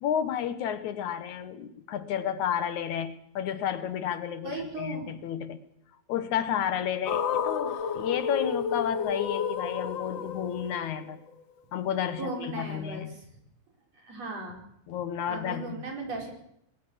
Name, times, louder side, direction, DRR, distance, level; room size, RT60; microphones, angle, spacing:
voice 1, 0.0-5.6 6.1-11.2 11.7-13.2 14.9-15.8, left 9 dB, 75° left, 12 dB, 2.6 m, -31 dB
voice 2, 4.4-5.1 12.2-13.1 14.0-14.6 15.3-16.3, right 2 dB, 55° right, 1 dB, 6.3 m, -36 dB
sound 1, 7.1-11.3, left 7 dB, 55° left, 1.5 m, -31 dB
21.0 x 19.0 x 7.3 m, 0.74 s
omnidirectional pair, 3.4 m